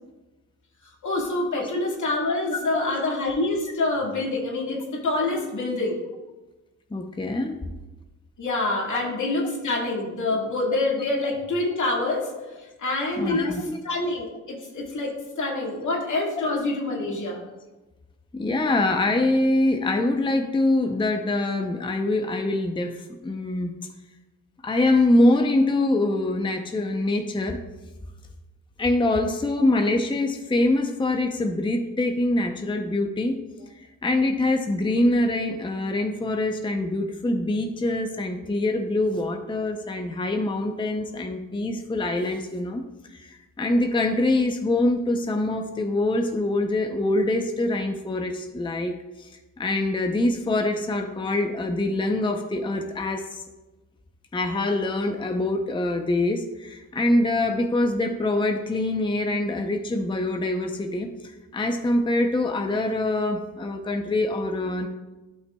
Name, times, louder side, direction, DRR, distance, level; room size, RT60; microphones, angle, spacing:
voice 1, 1.0-6.0 8.4-12.3 12.6-13.6 13.8-17.4, left 2 dB, 65° left, -2 dB, 2.1 m, -26 dB
voice 2, 2.5-3.0 6.9-7.6 8.9-9.0 13.2-13.8 18.3-23.7 24.6-27.6 28.8-33.4 34.0-42.8 43.1-48.9 49.2-49.3 49.6-53.4 54.3-64.9, left 2 dB, 15° left, 4 dB, 0.6 m, -24 dB
12.5 x 5.5 x 2.3 m, 1.1 s
cardioid pair, 65°, 33 cm